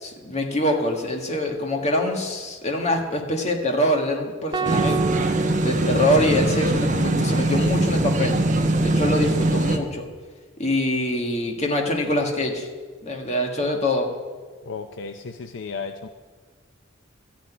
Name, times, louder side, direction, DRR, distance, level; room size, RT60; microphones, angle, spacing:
voice 1, 0.0-5.0 5.6-8.4 8.8-10.1 10.6-12.7 13.0-14.1, left 1 dB, 35° left, 1 dB, 1.7 m, -24 dB
sound 1, 4.5-6.9, right 6 dB, 25° right, 0.4 m, -29 dB
sound 2, 4.6-9.8, right 2 dB, 40° right, 1.0 m, -22 dB
voice 2, 14.6-16.1, left 5 dB, 65° left, 7 dB, 0.6 m, -34 dB
13.5 x 6.0 x 9.3 m, 1.5 s
head